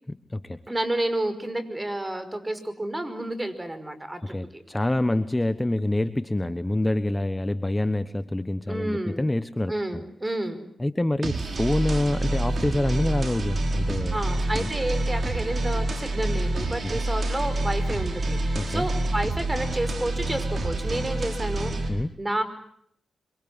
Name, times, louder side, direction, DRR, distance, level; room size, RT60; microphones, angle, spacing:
voice 1, 0.1-0.6 4.2-10.0 10.8-14.2 14.5-14.7 16.8-16.9 18.5-18.9 21.9-22.1, left 1 dB, 15° left, 12 dB, 1.2 m, -26 dB
voice 2, 0.7-4.6 8.7-9.2 9.7-10.6 14.1-22.4, right 1 dB, 20° right, 11 dB, 5.3 m, -30 dB
sound 1, 11.2-21.9, right 2 dB, 55° right, 4.9 m, -27 dB
25.5 x 24.5 x 7.9 m, 0.69 s
supercardioid pair, 40°, 0 cm